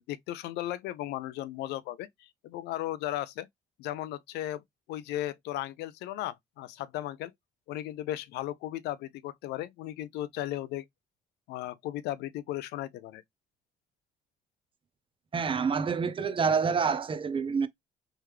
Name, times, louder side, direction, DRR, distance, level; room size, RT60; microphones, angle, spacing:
voice 1, 0.0-3.5 3.8-7.3 7.7-10.9 11.5-13.2, left 14 dB, 85° left, 0.5 m, -36 dB
voice 2, 15.3-17.7, right 5 dB, 30° right, 0.6 m, -27 dB
3.5 x 3.1 x 3.1 m
cardioid pair, 110°, 17 cm